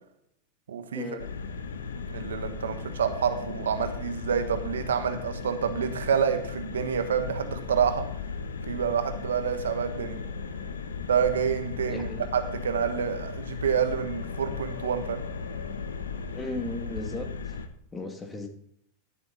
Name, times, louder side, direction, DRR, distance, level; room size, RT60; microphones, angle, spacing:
voice 1, 0.7-1.1 2.1-8.1 8.7-10.2 11.1-15.2, right 7 dB, 85° right, 9 dB, 1.2 m, -28 dB
sound 1, 1.2-17.7, left 5 dB, 85° left, 1.0 m, -36 dB
voice 2, 11.9-12.3 16.3-17.6 17.9-18.5, left 2 dB, 20° left, 4 dB, 2.4 m, -36 dB
12.5 x 7.4 x 4.3 m, 0.71 s
hypercardioid pair, 100°, 0 cm